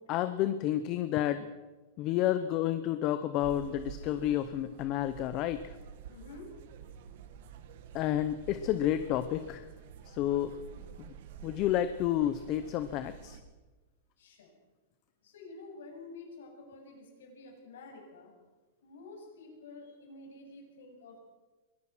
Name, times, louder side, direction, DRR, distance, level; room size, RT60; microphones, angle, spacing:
voice 1, 0.1-1.5 2.0-5.7 7.9-9.6 10.0-10.6 11.0-11.1 11.4-13.4, left 12 dB, 30° left, 11 dB, 0.8 m, -30 dB
sound 1, 3.4-13.4, right 8 dB, 50° right, 2.0 m, -49 dB
voice 2, 6.1-6.5 14.2-14.5 15.2-18.3 18.8-21.2, left 3 dB, 90° left, 2 dB, 8.0 m, -49 dB
23.5 x 19.0 x 6.2 m, 1.2 s
supercardioid pair, 170°, 0 cm